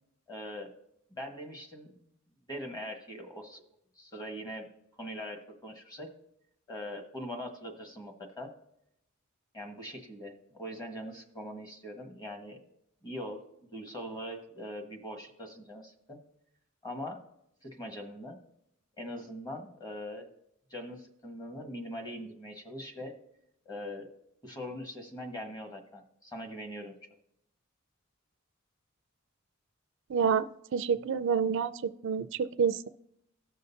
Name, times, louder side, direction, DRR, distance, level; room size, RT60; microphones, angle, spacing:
voice 1, 0.3-0.7 1.1-1.9 2.5-3.6 3.9-4.7 5.0-6.1 6.7-8.5 9.5-12.6 13.0-13.4 13.7-16.2 16.8-17.2 17.6-18.4 19.0-20.3 20.7-23.1 23.6-24.1 24.4-26.9, equal, 20° left, 3 dB, 1.4 m, -42 dB
voice 2, 30.1-30.4 30.7-32.9, right 6 dB, 65° right, 13 dB, 0.4 m, -28 dB
17.5 x 6.4 x 2.7 m, 0.79 s
head